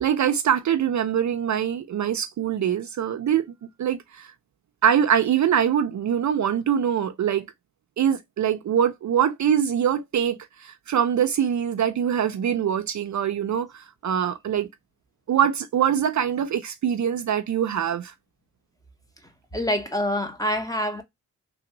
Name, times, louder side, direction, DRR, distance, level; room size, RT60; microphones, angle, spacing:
voice 1, 0.0-3.5 3.8-4.3 4.8-7.5 8.0-14.7 15.3-18.1, right 9 dB, 55° right, 0.5 m, -23 dB
voice 2, 19.5-21.0, equal, 10° left, 0.9 m, -26 dB
3.3 x 2.4 x 2.9 m
cardioid pair, 80°, 35 cm